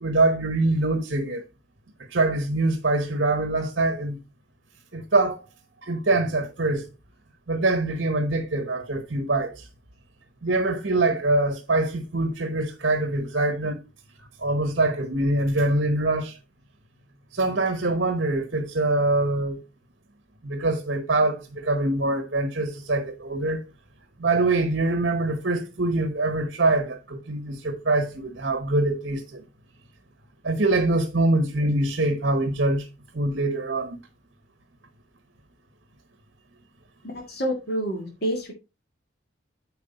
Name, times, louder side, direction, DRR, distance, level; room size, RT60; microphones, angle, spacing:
voice 1, 0.0-1.4 2.1-4.2 4.9-5.4 5.8-6.8 7.5-9.5 10.4-13.8 14.4-16.3 17.3-19.6 20.4-23.6 24.2-29.4 30.4-32.9 33.1-34.0, right 2 dB, 60° right, 1.1 m, -24 dB
voice 2, 37.0-38.5, equal, 55° left, 2.0 m, -28 dB
9.3 x 4.6 x 4.1 m
head